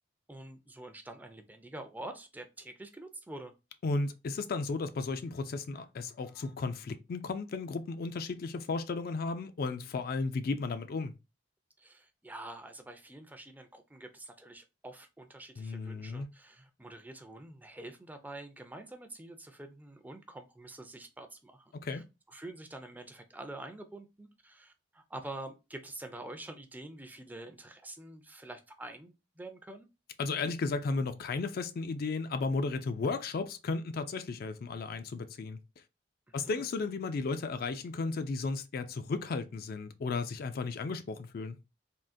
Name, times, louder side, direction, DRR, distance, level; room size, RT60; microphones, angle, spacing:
voice 1, 0.3-3.5 11.8-29.9 36.3-36.6, right 2 dB, 10° right, 0.4 m, -47 dB
voice 2, 3.8-11.1 15.6-16.3 21.8-22.0 30.2-35.6 36.3-41.6, left 3 dB, 55° left, 0.4 m, -34 dB
3.6 x 2.4 x 2.5 m
head